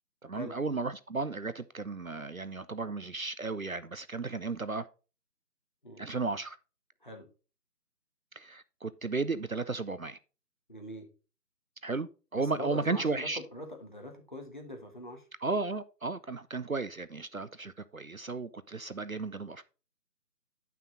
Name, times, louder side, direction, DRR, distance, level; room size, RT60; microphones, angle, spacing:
voice 1, 0.2-4.9 6.0-6.6 8.4-10.2 11.8-13.4 15.4-19.6, right 3 dB, 60° right, 0.5 m, -34 dB
voice 2, 10.7-11.1 12.4-15.3, equal, 30° left, 1.2 m, -42 dB
9.2 x 5.8 x 3.9 m
figure-of-eight pair, 165°, 49 cm